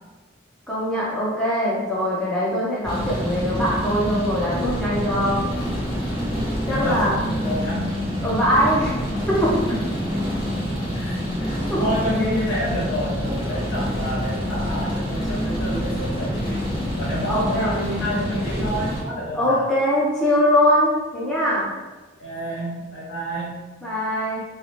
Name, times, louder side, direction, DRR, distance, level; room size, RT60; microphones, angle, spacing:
voice 1, 0.7-5.5 6.7-7.2 8.2-9.6 11.7-11.8 17.3-17.7 19.3-21.7 23.8-24.4, equal, 5° left, -8 dB, 0.4 m, -22 dB
sound 1, 2.8-19.0, equal, 20° left, 0.8 m, -26 dB
voice 2, 6.7-7.9 9.7-10.1 10.9-16.6 17.0-19.7 22.2-23.6, equal, 65° left, -6 dB, 1.0 m, -29 dB
2.7 x 2.0 x 3.0 m, 1.2 s
head